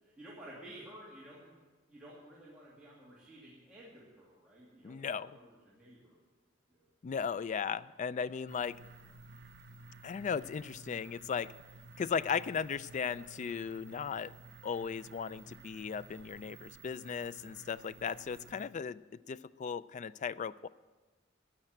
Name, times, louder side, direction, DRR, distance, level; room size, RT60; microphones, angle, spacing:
voice 1, 0.0-1.6 1.9-6.2 6.7-6.9, right 1 dB, 5° right, -8 dB, 2.5 m, -53 dB
voice 2, 4.8-5.3 7.0-8.7 10.0-11.5 12.0-14.3 14.6-19.0 19.3-20.7, left 6 dB, 40° left, 17 dB, 0.3 m, -36 dB
sound 1, 8.5-18.7, right 3 dB, 60° right, 0.7 m, -54 dB
13.0 x 9.0 x 7.7 m, 1.3 s
head